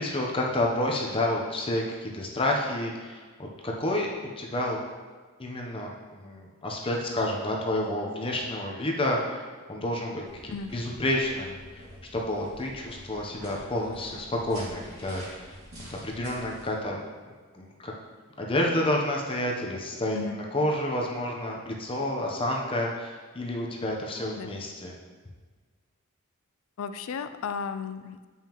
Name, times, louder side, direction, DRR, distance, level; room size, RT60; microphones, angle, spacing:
voice 1, 0.0-4.1 4.4-4.8 5.4-11.8 12.1-15.6 15.9-17.0 17.5-17.9 18.4-20.3 20.5-24.9, left 1 dB, 25° left, -1 dB, 0.8 m, -29 dB
sound 1, 10.3-16.7, equal, 65° right, 2.2 m, -46 dB
voice 2, 26.8-28.3, left 6 dB, 65° left, 11 dB, 0.4 m, -34 dB
8.9 x 5.5 x 3.0 m, 1.5 s
head